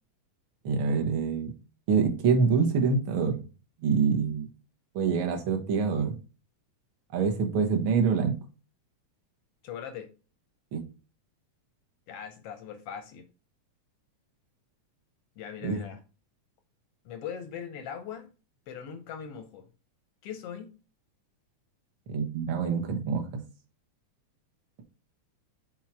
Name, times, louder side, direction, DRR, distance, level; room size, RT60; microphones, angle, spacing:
voice 1, 0.6-1.5 1.9-3.4 3.8-4.5 4.9-6.1 7.1-8.4 10.7-10.8 15.6-15.8 22.1-23.4, right 5 dB, 55° right, 1.5 m, -26 dB
voice 2, 9.6-10.1 12.1-13.3 15.4-16.0 17.0-18.3 18.7-19.7 20.2-20.7, left 8 dB, 75° left, 1.4 m, -40 dB
6.0 x 4.6 x 4.6 m
omnidirectional pair, 3.5 m